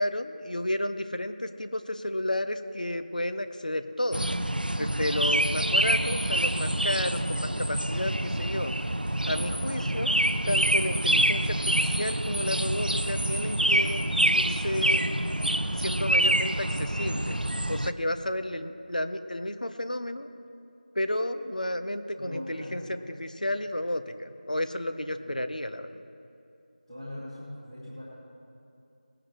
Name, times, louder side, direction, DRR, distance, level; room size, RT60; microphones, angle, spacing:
voice 1, 0.0-4.3 4.8-8.7 9.2-10.2 10.5-14.0 14.3-15.0 15.8-17.4 17.7-20.3 20.9-26.0, left 1 dB, 55° left, 9 dB, 0.8 m, -32 dB
sound 1, 4.1-17.9, right 1 dB, 75° right, 0.6 m, -26 dB
voice 2, 12.4-12.8 22.2-22.9 25.2-25.4 26.9-28.0, left 1 dB, ahead, -17 dB, 1.4 m, -42 dB
20.0 x 9.9 x 3.2 m, 2.7 s
figure-of-eight pair, 175°, 5 cm